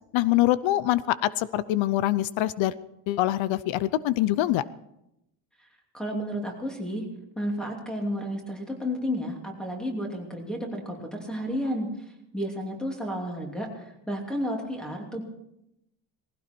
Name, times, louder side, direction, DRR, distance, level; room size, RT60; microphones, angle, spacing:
voice 1, 0.1-2.7 3.1-4.6, left 15 dB, 85° left, 17 dB, 0.7 m, -24 dB
voice 2, 5.9-7.0 7.3-11.9 12.3-15.2, equal, ahead, 1 dB, 2.9 m, -32 dB
19.5 x 16.0 x 4.5 m, 0.83 s
cardioid pair, 170°, 45 cm